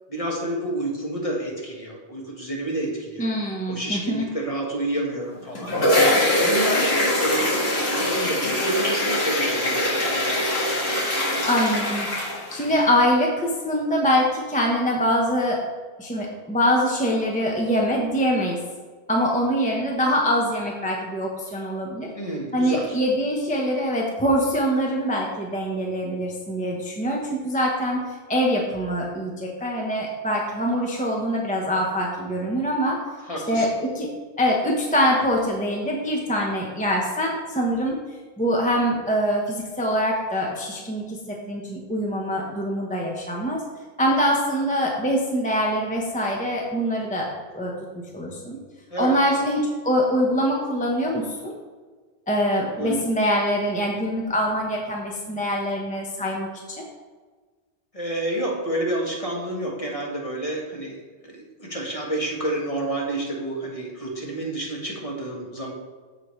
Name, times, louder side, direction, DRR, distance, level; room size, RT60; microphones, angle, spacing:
voice 1, 0.1-3.3 3.7-10.4 22.1-23.0 33.2-33.7 48.9-49.2 52.8-53.0 57.9-65.7, right 1 dB, 30° left, -2 dB, 1.6 m, -29 dB
voice 2, 3.2-4.3 11.5-12.1 12.5-15.6 16.0-18.6 19.1-22.1 22.5-33.0 33.5-34.1 34.4-38.0 38.4-43.6 44.0-47.3 47.5-47.7 48.1-48.6 49.0-51.6 52.3-56.5 56.8-56.9, equal, 10° left, -2 dB, 0.9 m, -24 dB
sound 1, 5.3-12.8, left 1 dB, 70° left, 2.2 m, -23 dB
14.0 x 5.0 x 3.2 m, 1.4 s
omnidirectional pair, 1.1 m